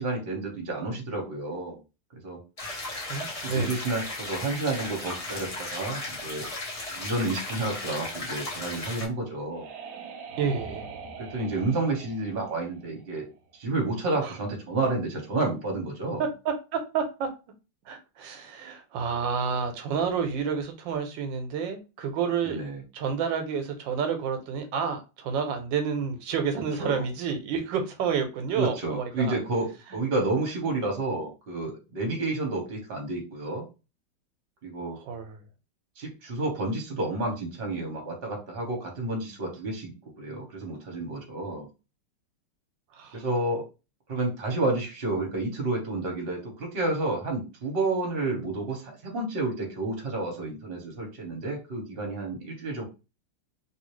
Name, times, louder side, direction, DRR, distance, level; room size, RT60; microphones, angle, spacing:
voice 1, 0.0-1.8 2.2-2.4 3.3-6.5 7.0-9.7 11.2-13.3 13.5-16.2 22.4-22.8 26.8-27.0 28.5-33.6 34.6-35.0 36.0-41.7 43.1-43.6 44.1-52.8, right 2 dB, 35° right, 1.1 m, -30 dB
sound 1, 2.6-9.0, left 2 dB, 35° left, 0.6 m, -36 dB
voice 2, 3.1-3.7 10.4-10.9 14.2-14.4 16.2-17.3 17.8-22.6 22.9-29.4 29.9-30.0 34.9-35.4 42.9-43.3, right 6 dB, 85° right, 1.4 m, -30 dB
sound 2, 9.0-13.5, right 5 dB, 70° right, 1.1 m, -43 dB
3.0 x 2.7 x 3.0 m
omnidirectional pair, 2.0 m